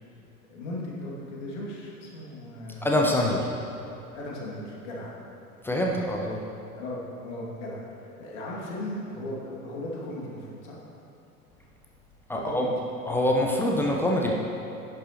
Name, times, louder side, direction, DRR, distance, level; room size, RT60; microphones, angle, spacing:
voice 1, 0.5-2.9 4.1-5.1 5.8-6.0 6.8-7.8 8.2-10.8 12.3-12.7, left 1 dB, 50° left, -4 dB, 2.4 m, -37 dB
voice 2, 2.8-3.4 5.6-6.4 12.3-12.7 13.1-14.3, left 1 dB, 5° left, -1 dB, 0.4 m, -24 dB
11.0 x 9.8 x 3.0 m, 3.0 s
figure-of-eight pair, 85°, 44 cm